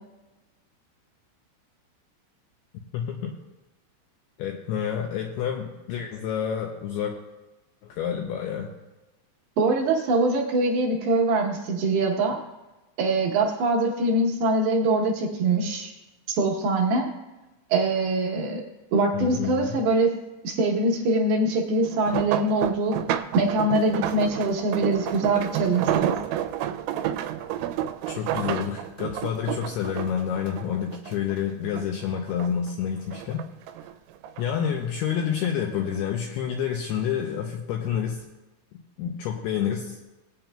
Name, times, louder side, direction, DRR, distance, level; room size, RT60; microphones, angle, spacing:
voice 1, 2.9-3.4 4.4-7.2 7.8-8.7 19.1-19.8 28.1-33.4 34.4-38.2 39.0-40.1, left 8 dB, 85° left, 2 dB, 2.3 m, -29 dB
voice 2, 9.6-12.4 13.0-15.9 16.3-17.1 17.7-18.6 18.9-20.1 20.4-23.0 23.3-26.2, right 2 dB, 75° right, -2 dB, 2.5 m, -23 dB
sound 1, 21.8-31.4 31.8-32.7 33.1-34.4 35.2-35.5 35.9-36.0, right 11 dB, 90° right, 3.0 m, -30 dB
19.0 x 8.7 x 2.2 m, 1.1 s
omnidirectional pair, 5.3 m